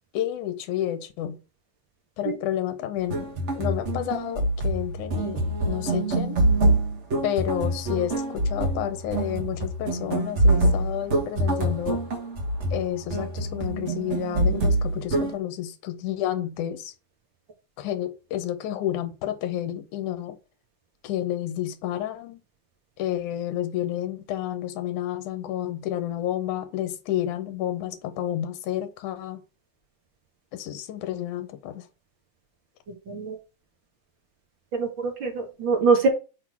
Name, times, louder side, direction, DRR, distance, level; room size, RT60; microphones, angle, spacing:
voice 1, 0.1-1.4 2.2-3.3 3.6-6.4 7.2-12.0 12.7-16.9 17.8-20.4 21.0-22.4 23.0-29.4 30.5-31.9, left 12 dB, 80° left, 2.4 m, -30 dB
sound 1, 3.0-15.3, right 1 dB, 90° right, 0.6 m, -25 dB
voice 2, 33.1-33.4 34.7-36.1, right 4 dB, 45° right, 2.2 m, -23 dB
6.3 x 3.9 x 6.1 m
omnidirectional pair, 3.5 m